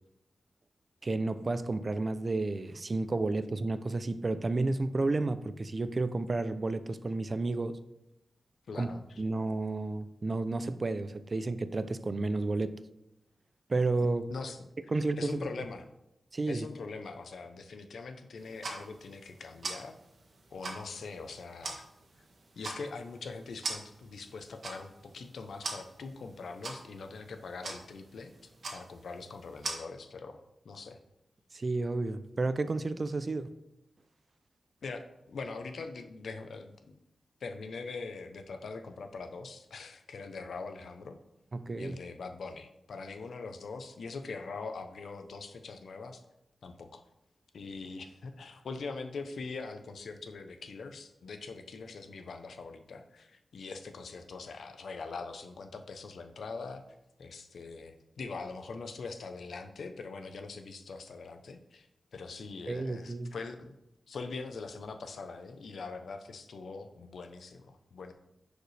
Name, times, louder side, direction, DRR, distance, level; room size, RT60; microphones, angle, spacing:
voice 1, 1.0-7.8 8.8-8.9 9.2-12.8 13.7-14.3 14.9-15.4 16.3-16.7 31.5-33.5 41.5-42.0 62.7-63.3, right 3 dB, 35° right, 0.4 m, -31 dB
voice 2, 8.7-9.2 14.3-15.9 16.5-20.0 20.5-21.9 22.6-28.3 28.7-31.0 34.8-37.0 37.4-41.2 41.8-46.2 46.6-47.0 47.5-56.8 57.2-63.8 64.1-68.1, left 4 dB, 75° left, 0.7 m, -42 dB
sound 1, 18.4-29.7, right 3 dB, 60° right, 1.6 m, -44 dB
10.5 x 5.0 x 3.3 m
wide cardioid pair, 115°, 0 cm